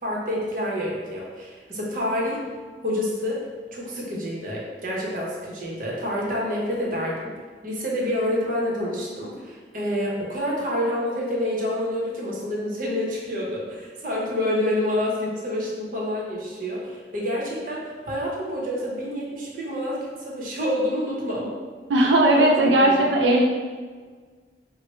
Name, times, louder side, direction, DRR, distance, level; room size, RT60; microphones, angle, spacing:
voice 1, 0.0-2.4 2.8-3.4 3.7-7.3 7.6-21.5 22.3-23.1, left 1 dB, 50° right, -4 dB, 0.8 m, -28 dB
voice 2, 21.9-23.4, right 1 dB, 90° right, 0 dB, 0.4 m, -17 dB
4.3 x 2.1 x 3.0 m, 1.5 s
head